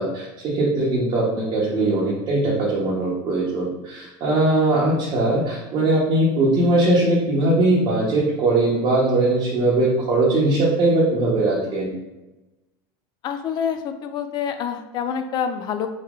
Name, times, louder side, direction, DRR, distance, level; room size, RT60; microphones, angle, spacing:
voice 1, 0.0-12.0, right 2 dB, 40° right, -7 dB, 1.1 m, -20 dB
voice 2, 13.2-15.9, left 8 dB, 40° left, 8 dB, 0.5 m, -27 dB
4.5 x 3.1 x 3.7 m, 1.0 s
supercardioid pair, 135°, 11 cm